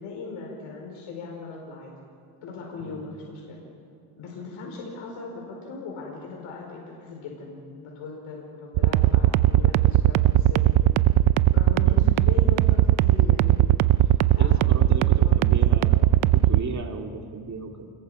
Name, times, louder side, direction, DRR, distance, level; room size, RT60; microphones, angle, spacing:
voice 1, 0.0-1.9 2.4-3.6 4.2-10.7 11.3-13.8 14.2-15.8, left 4 dB, 80° left, -1 dB, 5.0 m, -39 dB
sound 1, 8.8-16.6, right 14 dB, 70° right, 0.7 m, -18 dB
voice 2, 11.7-12.1 14.4-17.9, right 4 dB, 35° right, 2 dB, 2.7 m, -36 dB
29.5 x 22.0 x 5.1 m, 2.5 s
cardioid pair, 110°, 49 cm